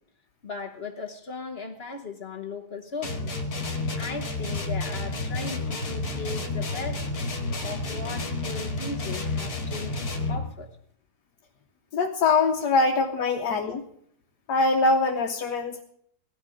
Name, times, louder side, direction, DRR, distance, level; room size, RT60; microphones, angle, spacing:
voice 1, 0.4-3.3 4.0-7.0 7.6-10.7 12.8-12.9 13.7-13.8, left 4 dB, 40° left, 4 dB, 1.2 m, -37 dB
sound 1, 3.0-10.5, left 3 dB, 60° left, 2.2 m, -30 dB
voice 2, 11.9-13.8 14.5-15.8, left 3 dB, 80° left, 2 dB, 1.5 m, -23 dB
17.5 x 12.5 x 5.1 m, 0.68 s
omnidirectional pair, 1.7 m